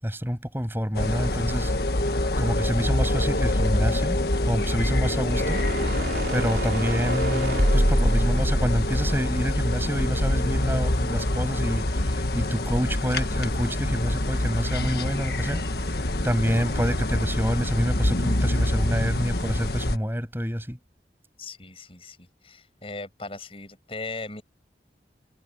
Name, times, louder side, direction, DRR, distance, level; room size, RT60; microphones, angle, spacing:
voice 1, 0.0-1.7 2.4-4.2 4.5-5.6 5.9-20.8, equal, 15° right, 7.6 m, -28 dB
sound 1, 0.9-20.0, left 1 dB, 65° left, 1.5 m, -25 dB
sound 2, 5.3-10.5, right 1 dB, 65° right, 3.0 m, -27 dB
voice 2, 21.4-24.4, left 3 dB, 30° left, 7.6 m, -38 dB
head